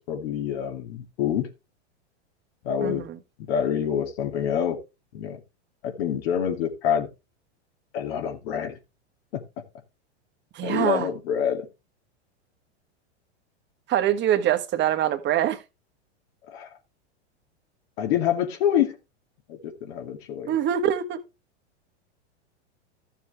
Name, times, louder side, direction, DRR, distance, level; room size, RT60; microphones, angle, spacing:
voice 1, 0.0-1.5 2.6-3.1 3.4-4.8 5.1-5.4 5.8-7.1 7.9-8.8 9.3-9.4 10.6-11.7 16.5-16.7 18.0-19.0 19.5-20.6, left 9 dB, 60° left, 2.5 m, -26 dB
voice 2, 2.8-3.2 10.5-11.1 13.9-15.6 20.5-21.2, right 11 dB, 30° right, 1.5 m, -24 dB
13.0 x 7.0 x 3.2 m
hypercardioid pair, 120°, 34 cm